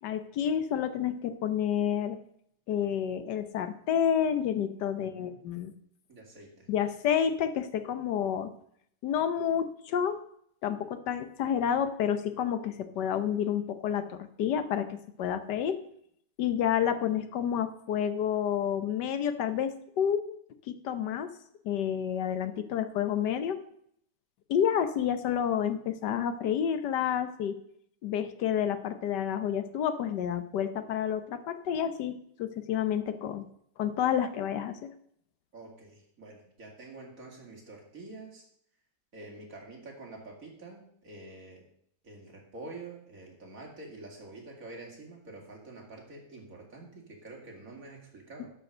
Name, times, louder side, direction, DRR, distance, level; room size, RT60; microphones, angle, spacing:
voice 1, 0.0-2.2 2.7-5.7 6.7-8.5 9.0-10.2 10.6-15.8 16.4-20.4 20.7-21.3 21.6-23.6 24.5-27.6 28.0-33.5 33.8-34.9, left 9 dB, 75° left, 10 dB, 1.5 m, -29 dB
voice 2, 4.9-5.3 6.1-6.7 35.5-38.4 39.1-41.6 42.0-48.5, right 2 dB, 50° right, -1 dB, 3.0 m, -47 dB
12.0 x 5.3 x 6.6 m, 0.68 s
omnidirectional pair, 1.9 m